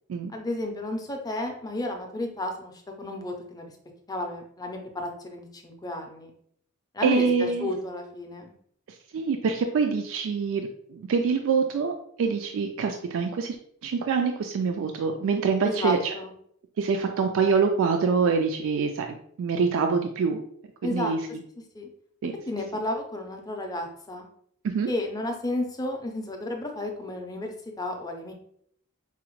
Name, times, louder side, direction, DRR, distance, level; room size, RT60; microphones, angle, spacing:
voice 1, 0.3-2.7 3.0-3.7 4.1-6.3 6.9-8.5 15.6-16.3 20.8-21.1 21.7-21.9 22.5-24.3 24.9-28.3, left 1 dB, 20° left, 3 dB, 0.5 m, -32 dB
voice 2, 7.0-7.7 8.9-11.9 12.2-13.6 13.8-16.1 16.8-20.4 20.8-21.2 22.2-22.3 24.6-24.9, right 5 dB, 65° right, 5 dB, 0.3 m, -25 dB
4.8 x 2.1 x 3.0 m, 0.66 s
head